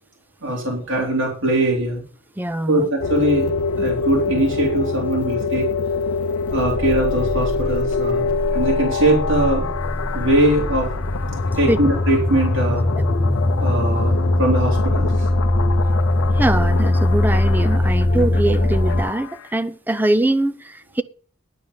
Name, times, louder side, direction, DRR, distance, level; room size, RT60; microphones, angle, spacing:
voice 1, 0.4-2.0 2.7-5.7 6.5-9.7 10.1-10.9 11.6-12.8 13.6-15.3, right 1 dB, 70° right, 3.0 m, -21 dB
voice 2, 2.4-2.9 11.7-11.8 13.0-13.1 16.3-21.0, right 1 dB, 10° right, 0.4 m, -22 dB
sound 1, 3.0-19.5, left 5 dB, 85° left, 0.5 m, -26 dB
sound 2, 6.5-19.0, left 1 dB, 45° left, 1.6 m, -21 dB
11.0 x 5.0 x 8.0 m
head